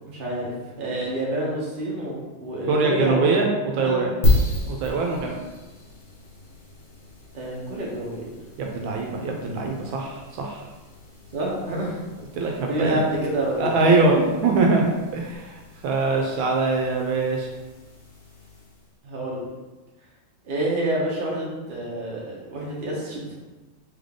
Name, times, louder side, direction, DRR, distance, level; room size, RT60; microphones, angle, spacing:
voice 1, 0.1-4.0 7.3-8.3 11.3-12.0 12.4-14.3 19.0-19.5 20.4-23.3, right 1 dB, 40° right, -4 dB, 0.8 m, -28 dB
voice 2, 2.7-3.5 3.8-4.1 4.7-5.4 8.6-10.6 12.4-13.0 13.6-17.5, right 3 dB, 75° right, 1 dB, 1.3 m, -23 dB
sound 1, 4.2-19.0, left 1 dB, 40° left, 1.5 m, -32 dB
3.6 x 3.5 x 3.6 m, 1.2 s
omnidirectional pair, 2.3 m